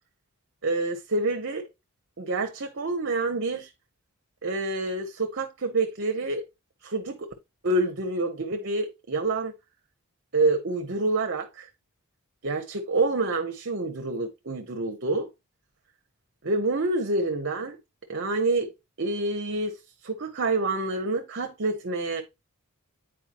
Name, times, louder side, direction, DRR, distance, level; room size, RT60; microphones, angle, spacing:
voice 1, 0.6-1.7 2.2-3.7 4.4-6.5 6.8-7.3 7.6-9.5 10.3-11.7 12.4-15.3 16.4-17.8 18.1-18.7 19.0-19.8 20.0-22.2, right 2 dB, 55° right, 0.8 m, -27 dB
8.9 x 4.5 x 2.9 m
head